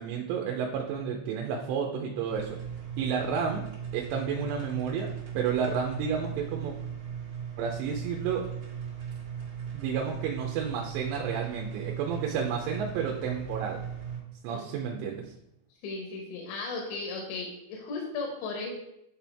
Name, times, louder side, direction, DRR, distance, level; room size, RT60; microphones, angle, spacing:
voice 1, 0.0-2.6 3.0-3.7 3.9-6.7 7.6-8.5 9.7-13.8 14.4-15.3, right 7 dB, 80° right, 0 dB, 2.7 m, -31 dB
sound 1, 2.3-14.2, right 8 dB, 45° right, 1.8 m, -38 dB
voice 2, 15.8-18.7, left 3 dB, 80° left, 0 dB, 3.4 m, -36 dB
10.0 x 4.3 x 3.4 m, 0.83 s
omnidirectional pair, 5.4 m